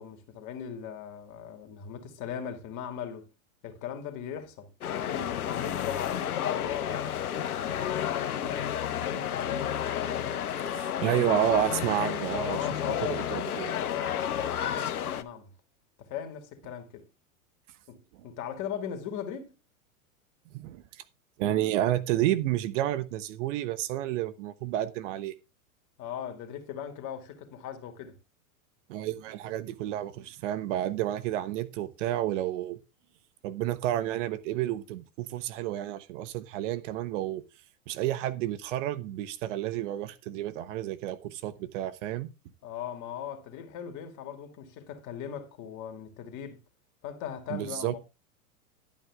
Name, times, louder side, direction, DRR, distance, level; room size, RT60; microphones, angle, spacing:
voice 1, 0.0-3.3 3.6-8.6 9.0-10.4 12.5-13.2 13.7-15.5 16.0-17.1 17.9-18.0 18.2-19.5 26.0-28.2 42.6-46.6 47.0-48.1, left 8 dB, 45° left, 2.5 m, -39 dB
sound 1, 4.8-15.2, left 9 dB, 85° left, 1.0 m, -31 dB
voice 2, 10.7-12.6 13.0-13.7 20.5-20.8 21.4-25.3 28.9-32.8 33.4-37.4 37.9-42.3 47.5-47.9, right 13 dB, 55° right, 1.2 m, -30 dB
12.0 x 8.4 x 3.6 m
hypercardioid pair, 105°, 43 cm